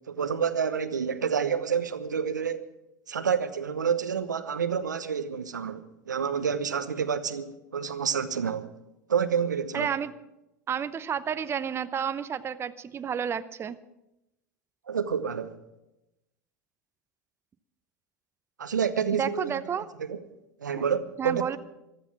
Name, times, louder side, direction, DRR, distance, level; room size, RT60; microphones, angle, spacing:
voice 1, 0.1-2.7 3.1-8.7 9.1-9.9 14.9-15.6 18.6-19.5 20.1-20.2 20.6-21.6, right 7 dB, 85° right, 0.9 m, -28 dB
voice 2, 9.7-10.1 10.7-13.8 19.1-19.9 20.8-20.9 21.2-21.6, right 8 dB, 25° right, 0.7 m, -31 dB
15.0 x 13.0 x 5.9 m
hypercardioid pair, 85°, 10 cm